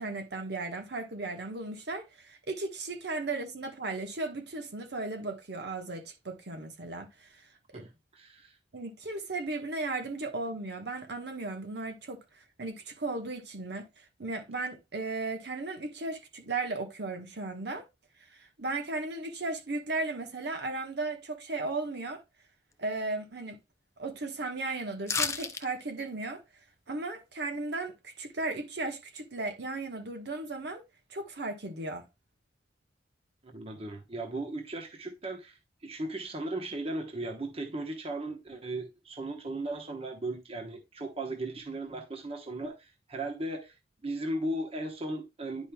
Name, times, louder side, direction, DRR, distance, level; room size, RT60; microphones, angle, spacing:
voice 1, 0.0-7.4 7.7-7.9 8.7-17.8 18.3-22.2 22.8-23.6 24.0-26.4 26.9-30.8 31.1-32.0, right 3 dB, 60° right, 1.2 m, -36 dB
voice 2, 7.7-8.6 33.4-35.6 35.8-43.7 44.0-45.7, right 2 dB, 30° right, 1.0 m, -37 dB
sound 1, 25.1-25.6 26.0-26.1, left 5 dB, 15° left, 0.5 m, -30 dB
10.5 x 5.2 x 2.3 m
head